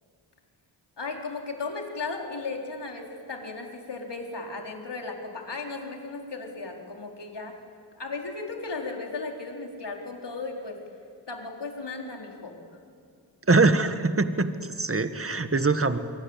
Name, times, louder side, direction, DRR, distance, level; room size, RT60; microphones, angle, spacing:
voice 1, 1.0-7.5 7.9-10.8 11.3-12.6, left 3 dB, 65° left, 2 dB, 4.5 m, -36 dB
voice 2, 13.5-14.5 14.8-16.0, right 3 dB, 30° right, 10 dB, 1.8 m, -22 dB
26.0 x 23.5 x 9.0 m, 2.2 s
cardioid pair, 45°, 45 cm